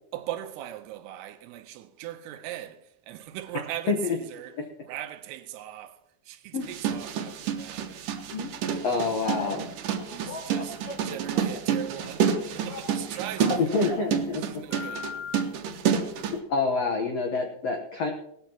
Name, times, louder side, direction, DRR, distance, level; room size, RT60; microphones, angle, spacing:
voice 1, 0.1-8.1 8.6-9.3 10.1-14.0 14.4-15.1, right 12 dB, 90° right, 2.9 m, -40 dB
sound 1, 6.6-16.4, right 7 dB, 70° right, 2.2 m, -29 dB
voice 2, 8.8-9.6 13.7-14.4 16.2-18.1, left 4 dB, 85° left, 1.4 m, -27 dB
Telephone, 9.2-9.5 10.0-11.7 12.0-14.1 14.7-15.4, left 3 dB, 55° left, 5.8 m, -39 dB
19.0 x 13.5 x 2.9 m
omnidirectional pair, 4.7 m